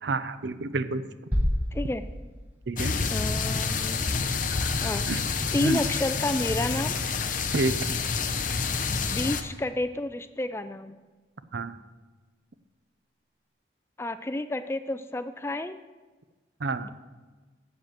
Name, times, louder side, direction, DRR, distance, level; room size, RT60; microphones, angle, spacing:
voice 1, 0.0-1.0 2.7-2.9 5.1-5.2 5.6-5.8 7.5-8.0 11.5-11.7 16.6-16.9, right 3 dB, 70° right, 13 dB, 0.5 m, -28 dB
sound 1, 1.3-3.1, equal, 10° right, 1.0 m, -29 dB
voice 2, 1.7-2.0 3.1-4.0 4.8-5.1 5.5-7.0 8.8-11.0 14.0-15.8 16.8-16.9, left 2 dB, 15° left, 11 dB, 0.3 m, -30 dB
sound 2, 2.8-9.4, left 5 dB, 45° left, 0.6 m, -28 dB
7.5 x 7.3 x 7.8 m, 1.3 s
head